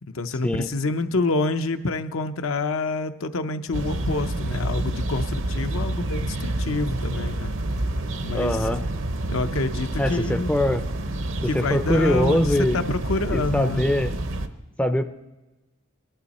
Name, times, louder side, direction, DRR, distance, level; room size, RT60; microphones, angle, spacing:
voice 1, 0.0-7.5 8.2-8.7 9.3-10.6 11.4-13.8, left 3 dB, 75° left, 8 dB, 0.7 m, -27 dB
sound 1, 3.7-14.5, right 1 dB, 65° right, 0.8 m, -28 dB
voice 2, 8.3-8.8 10.0-10.8 11.5-12.8 13.3-14.1 14.8-15.1, left 1 dB, 5° left, 8 dB, 0.4 m, -22 dB
20.5 x 11.5 x 4.2 m, 1.1 s
head